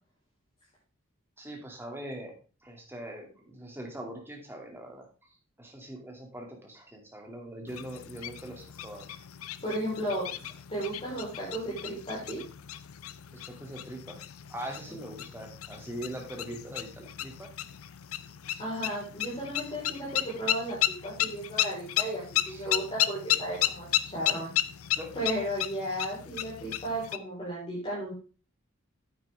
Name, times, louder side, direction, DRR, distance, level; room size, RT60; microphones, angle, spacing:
voice 1, 1.4-2.4 2.6-5.1 5.6-9.2 13.4-14.2 14.5-17.5 22.5-22.7 24.9-25.1, right 1 dB, 10° right, 1 dB, 2.3 m, -42 dB
sound 1, 7.7-27.2, left 12 dB, 90° left, 0.6 m, -34 dB
voice 2, 9.6-10.2 10.7-12.4 18.6-24.5 25.1-28.1, right 1 dB, 30° left, -8 dB, 4.2 m, -34 dB
9.5 x 8.9 x 3.5 m, 0.35 s
head